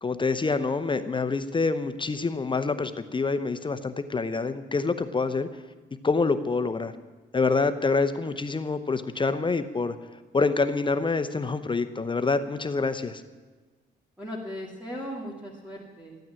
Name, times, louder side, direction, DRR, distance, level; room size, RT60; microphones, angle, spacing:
voice 1, 0.0-5.5 6.0-6.9 7.3-10.0 10.3-13.2, left 4 dB, 25° left, 11 dB, 0.8 m, -26 dB
voice 2, 14.2-16.2, equal, 5° right, -3 dB, 2.5 m, -37 dB
14.0 x 9.3 x 8.9 m, 1.3 s
cardioid pair, 90°, 20 cm